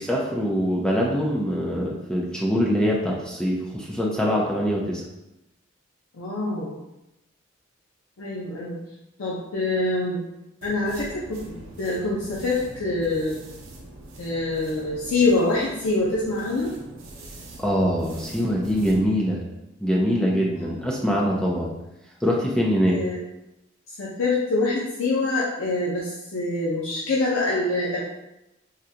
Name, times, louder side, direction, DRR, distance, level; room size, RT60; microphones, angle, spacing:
voice 1, 0.0-5.0 17.6-19.4 19.8-21.7 22.2-23.0, equal, 5° left, -3 dB, 0.4 m, -23 dB
voice 2, 6.1-6.8 8.2-8.8 9.2-10.2 10.6-13.4 14.2-16.7 20.6-20.8 22.9-23.2 24.0-28.0, left 2 dB, 80° left, -6 dB, 0.6 m, -25 dB
sound 1, 10.6-19.0, right 1 dB, 90° right, 0.6 m, -43 dB
3.6 x 2.2 x 2.7 m, 0.91 s
head